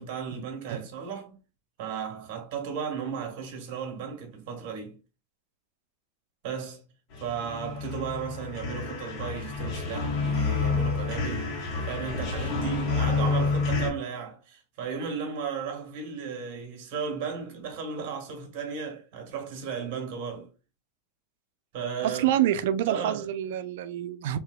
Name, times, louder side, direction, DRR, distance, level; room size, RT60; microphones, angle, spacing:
voice 1, 0.0-1.3 1.8-5.0 6.4-6.8 7.2-11.5 11.9-20.5 21.7-22.2 22.9-23.3, right 6 dB, 55° right, 1.3 m, -35 dB
sound 1, 7.1-13.9, left 4 dB, 50° left, 1.5 m, -29 dB
voice 2, 22.0-24.4, right 11 dB, 70° right, 0.4 m, -27 dB
3.4 x 2.8 x 2.3 m
supercardioid pair, 130°, 0 cm